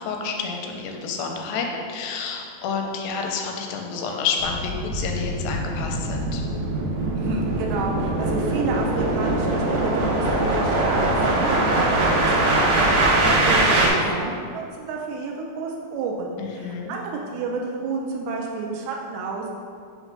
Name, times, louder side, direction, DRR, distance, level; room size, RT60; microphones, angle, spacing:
voice 1, 0.0-6.4 16.4-17.0, left 5 dB, 90° left, 2 dB, 2.7 m, -29 dB
sound 1, 4.4-13.9, right 2 dB, 65° right, 2.7 m, -22 dB
voice 2, 7.2-19.5, right 4 dB, 80° right, 0 dB, 2.3 m, -30 dB
6.4 x 3.2 x 5.1 m, 2.3 s
omnidirectional pair, 4.7 m